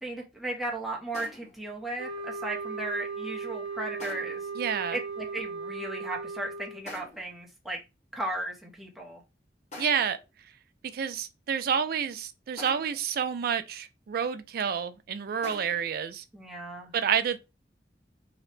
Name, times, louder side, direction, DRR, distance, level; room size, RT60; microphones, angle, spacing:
voice 1, 0.0-4.4 4.9-7.8 8.1-9.2 16.3-16.9, right 2 dB, ahead, 0.6 m, -36 dB
sound 1, 1.1-1.7 4.0-4.5 6.9-7.4 9.7-10.2 12.6-13.1 15.4-15.9, left 2 dB, 40° left, 0.9 m, -45 dB
sound 2, 2.0-6.9, right 4 dB, 70° left, 0.9 m, -37 dB
voice 2, 4.6-5.0 9.8-10.2 10.9-16.2 16.9-17.4, right 7 dB, 55° right, 0.3 m, -29 dB
2.8 x 2.1 x 3.2 m
head